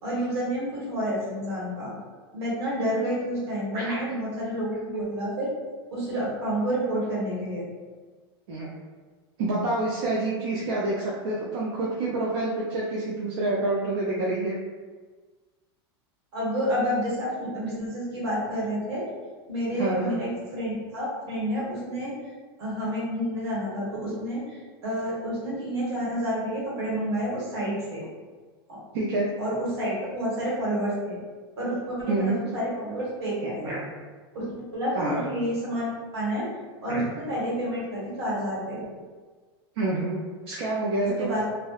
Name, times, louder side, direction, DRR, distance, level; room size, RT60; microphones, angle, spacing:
voice 1, 0.0-1.9 2.3-5.5 5.9-7.6 16.3-19.0 19.5-22.1 22.6-28.0 28.7-28.8 29.4-31.2 31.6-33.6 34.3-36.5 36.8-38.8 41.2-41.4, equal, 90° right, -6 dB, 1.2 m, -29 dB
voice 2, 9.4-14.6 19.8-20.1 28.9-29.3 32.1-32.4 33.6-33.8 34.9-35.2 36.8-37.1 39.8-40.2 40.5-41.3, right 2 dB, 75° right, -5 dB, 0.5 m, -27 dB
2.6 x 2.1 x 2.3 m, 1.4 s
supercardioid pair, 140°, 13 cm